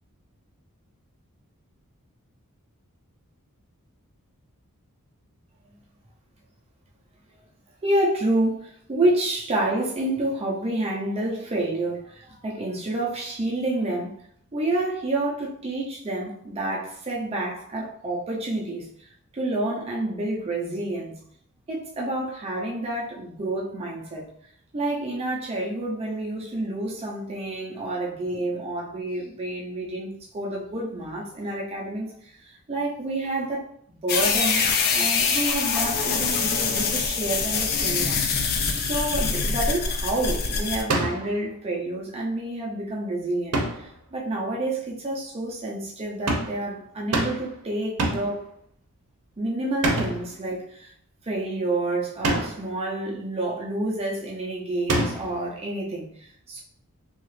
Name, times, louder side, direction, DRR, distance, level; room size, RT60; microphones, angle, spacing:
voice 1, 7.8-14.2 14.5-18.9 19.3-21.2 21.7-24.3 24.7-32.4 32.7-34.6 34.9-38.3 38.7-48.5 49.4-50.9 51.2-56.6, right 1 dB, 25° right, 0.5 m, -29 dB
sound 1, 34.1-40.8, left 5 dB, 45° left, 0.4 m, -24 dB
sound 2, 40.9-41.3 43.5-43.9 46.3-46.6 47.1-47.5 48.0-48.4 49.8-50.3 52.2-52.7 54.9-55.4, right 2 dB, 90° right, 0.6 m, -26 dB
2.8 x 2.4 x 3.1 m
head